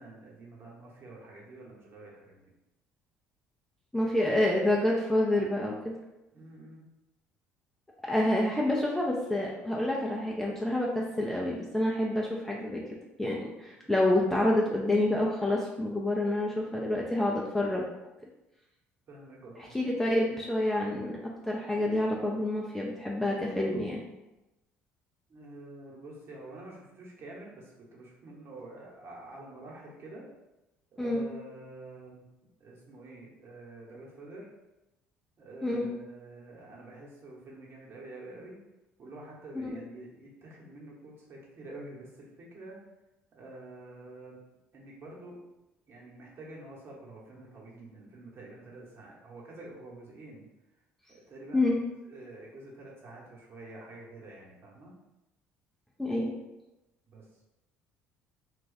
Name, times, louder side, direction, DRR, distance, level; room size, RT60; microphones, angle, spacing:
voice 1, 0.0-2.5 6.3-6.8 13.7-13.9 19.1-19.7 25.3-30.3 30.9-32.2 32.6-34.5 35.4-38.6 39.0-42.8 43.3-44.4 44.7-45.4 45.9-50.5 51.1-54.9 57.1-57.2, right 2 dB, 45° right, -3 dB, 1.2 m, -47 dB
voice 2, 3.9-5.7 8.0-12.8 13.2-17.8 19.7-21.2 21.5-24.0 31.0-31.2 35.6-35.9 39.5-39.8 51.5-51.8 56.0-56.3, left 1 dB, 5° left, -3 dB, 0.5 m, -28 dB
2.5 x 2.3 x 4.0 m, 0.96 s
hypercardioid pair, 60°, 6 cm